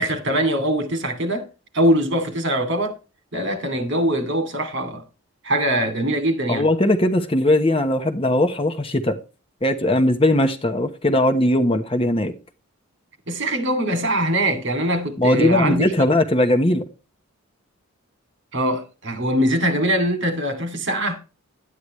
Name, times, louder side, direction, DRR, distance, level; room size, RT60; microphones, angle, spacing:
voice 1, 0.0-1.5 1.7-2.9 3.3-5.0 5.4-6.7 13.3-15.9 18.5-21.2, right 1 dB, 55° right, 2.6 m, -22 dB
voice 2, 6.5-9.2 9.6-12.3 15.2-16.8, left 1 dB, 25° left, 1.1 m, -19 dB
11.5 x 9.8 x 3.2 m
head